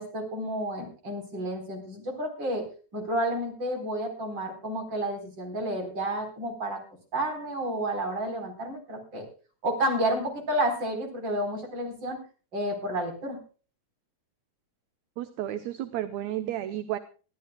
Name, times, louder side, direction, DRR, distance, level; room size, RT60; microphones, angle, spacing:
voice 1, 0.0-2.6 2.9-6.8 7.1-9.3 9.6-12.2 12.5-13.4, right 1 dB, 35° right, 4 dB, 4.8 m, -30 dB
voice 2, 15.2-17.0, right 12 dB, 75° right, 11 dB, 2.1 m, -32 dB
24.0 x 13.0 x 2.2 m, 0.36 s
omnidirectional pair, 3.4 m